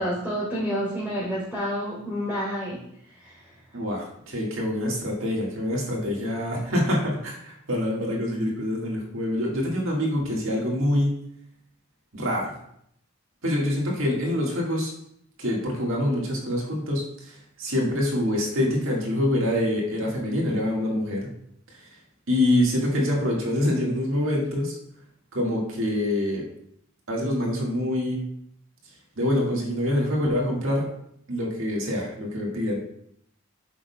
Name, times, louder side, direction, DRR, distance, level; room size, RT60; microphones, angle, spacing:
voice 1, 0.0-2.8 3.2-3.5, equal, ahead, -8 dB, 2.9 m, -29 dB
voice 2, 3.7-11.2 12.1-12.5 13.4-14.9 15.4-21.3 22.3-24.7 25.3-26.4 27.1-28.2 29.2-30.9 31.3-32.8, left 1 dB, 70° right, -2 dB, 1.8 m, -25 dB
8.6 x 6.3 x 2.3 m, 0.72 s
head